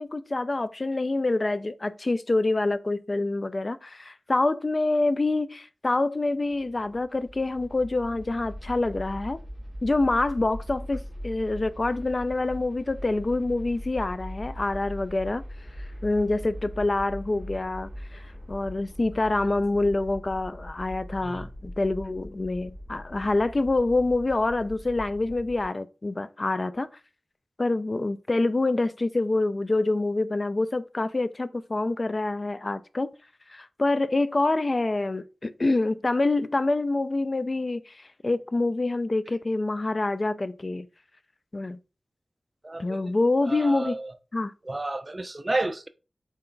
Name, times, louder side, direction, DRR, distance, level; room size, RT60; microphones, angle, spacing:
voice 1, 0.0-9.4 9.8-15.4 16.0-18.2 18.5-26.9 27.6-33.1 33.5-40.9 41.5-41.8 42.8-44.0 44.3-44.5, left 2 dB, 45° left, 0.3 m, -26 dB
sound 1, 6.3-25.6, equal, 70° left, 1.9 m, -41 dB
voice 2, 42.6-43.2 43.4-44.1 44.7-45.9, right 2 dB, 35° right, 0.3 m, -31 dB
4.0 x 2.2 x 3.8 m
wide cardioid pair, 60°, 0 cm